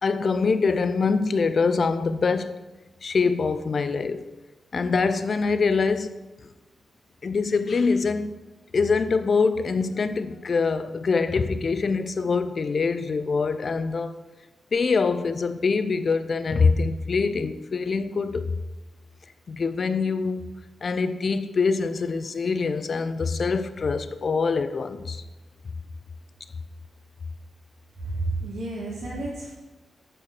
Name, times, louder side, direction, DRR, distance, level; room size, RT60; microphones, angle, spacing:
voice 1, 0.0-2.6 3.0-4.3 4.7-6.1 7.2-8.3 8.7-14.1 14.7-18.6 19.5-20.5 20.8-25.2, left 4 dB, 45° left, 0.5 m, -24 dB
voice 2, 28.0-29.5, right 2 dB, 85° right, 2.3 m, -31 dB
8.9 x 4.7 x 6.4 m
wide cardioid pair, 120°, 0 cm